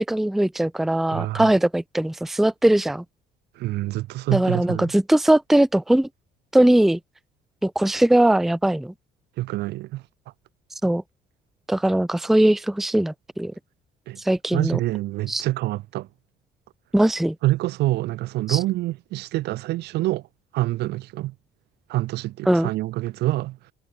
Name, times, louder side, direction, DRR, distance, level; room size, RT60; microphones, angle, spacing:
voice 1, 0.0-3.0 4.3-6.1 6.5-7.0 7.6-8.9 10.8-11.0 11.7-13.5 14.2-14.8 15.3-15.4 16.9-17.4 18.5-18.6 22.5-22.7, right 1 dB, ahead, 0.5 m, -20 dB
voice 2, 1.1-1.5 3.5-4.9 9.4-10.0 14.1-14.2 14.5-16.1 17.4-20.3 20.5-21.3 21.9-23.6, right 17 dB, 80° right, 1.3 m, -26 dB
cardioid pair, 110°, 17 cm